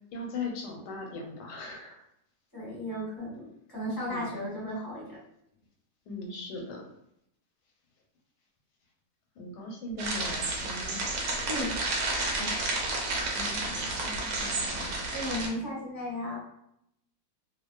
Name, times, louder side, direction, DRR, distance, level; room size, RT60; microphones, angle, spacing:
voice 1, 0.1-2.0 4.1-4.3 6.1-6.9 9.4-11.0 13.3-15.0, left 2 dB, 90° left, 1 dB, 1.2 m, -39 dB
voice 2, 2.5-5.2 11.5-11.8 12.3-12.5 15.1-16.4, left 1 dB, 15° left, -6 dB, 0.9 m, -35 dB
sound 1, 10.0-15.5, right 2 dB, 70° right, 1.0 m, -31 dB
2.5 x 2.4 x 2.2 m, 0.76 s
omnidirectional pair, 1.7 m